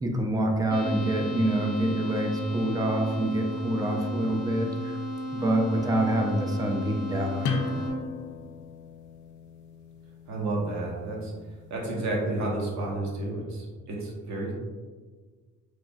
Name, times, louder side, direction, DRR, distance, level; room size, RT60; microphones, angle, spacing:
voice 1, 0.0-5.0 5.3-7.6, right 1 dB, 15° right, 1 dB, 0.4 m, -26 dB
sound 1, 0.7-7.9, equal, 30° left, 0.8 m, -34 dB
sound 2, 7.4-12.8, left 4 dB, 75° left, 0.4 m, -37 dB
voice 2, 10.3-11.3 11.7-14.5, right 2 dB, 65° right, -2 dB, 0.9 m, -31 dB
3.1 x 2.4 x 2.2 m, 1.4 s
cardioid pair, 90°, 30 cm